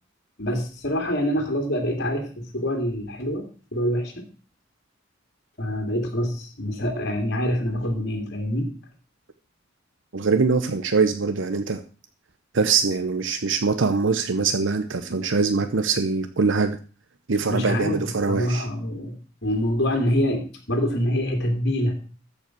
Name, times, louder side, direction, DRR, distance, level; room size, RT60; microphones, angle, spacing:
voice 1, 0.4-4.2 5.6-8.7 17.4-19.1 19.4-21.9, equal, 60° left, 3 dB, 2.6 m, -25 dB
voice 2, 10.1-11.8 12.5-16.8 17.3-18.7, right 4 dB, 70° right, 9 dB, 0.8 m, -23 dB
14.0 x 5.5 x 6.2 m, 0.38 s
head